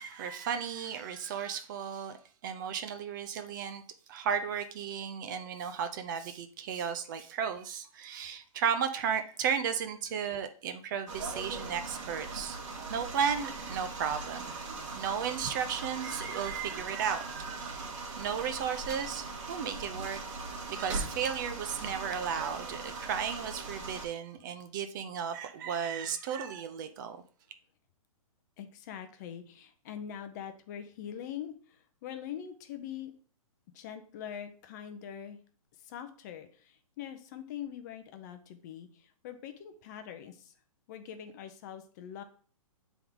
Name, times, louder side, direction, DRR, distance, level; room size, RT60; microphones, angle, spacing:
voice 1, 0.0-2.2 2.4-3.8 4.1-12.6 12.9-17.9 18.2-20.2 20.7-27.2, right 7 dB, 35° right, 0.5 m, -34 dB
sound 1, 11.1-24.1, right 3 dB, 55° right, 1.5 m, -40 dB
voice 2, 28.6-33.1 33.7-35.4 35.8-40.5 40.9-42.2, left 9 dB, 30° left, 0.6 m, -43 dB
7.6 x 3.6 x 3.5 m
hypercardioid pair, 150°, 18 cm